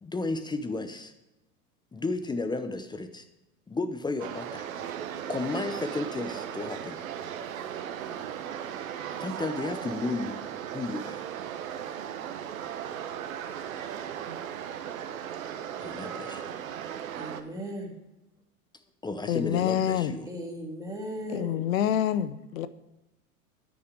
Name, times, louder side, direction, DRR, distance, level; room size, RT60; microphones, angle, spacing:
voice 1, 0.0-1.1 1.9-3.2 3.7-4.7 5.3-7.0 9.2-10.4 10.7-11.3 15.8-16.5 19.0-20.3, left 3 dB, 10° left, 0.7 m, -33 dB
sound 1, 4.2-17.4, right 9 dB, 65° right, 1.2 m, -37 dB
voice 2, 17.1-17.9 20.3-21.6, right 1 dB, 10° right, 3.0 m, -37 dB
voice 3, 19.3-20.1 21.3-22.7, left 10 dB, 65° left, 0.9 m, -27 dB
10.0 x 9.4 x 4.9 m
hypercardioid pair, 90°, 43 cm